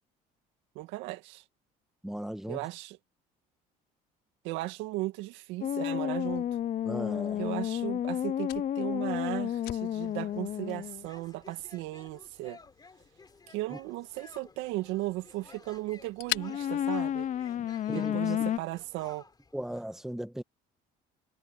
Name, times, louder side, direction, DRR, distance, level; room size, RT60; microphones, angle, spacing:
voice 1, 0.8-1.4 2.5-3.0 4.4-6.4 7.4-12.6 13.5-17.3 17.9-19.2, right 19 dB, 80° right, 2.1 m, -36 dB
voice 2, 2.0-2.6 6.8-7.5 13.7-13.8 17.6-18.2 19.5-20.4, right 1 dB, ahead, 1.5 m, -37 dB
sound 1, 5.6-11.0 16.3-18.6, left 10 dB, 40° left, 0.6 m, -31 dB
Fire, 6.3-17.8, left 18 dB, 75° left, 4.6 m, -45 dB
sound 2, 9.7-19.8, left 4 dB, 20° left, 3.5 m, -55 dB
supercardioid pair, 95°, 19 cm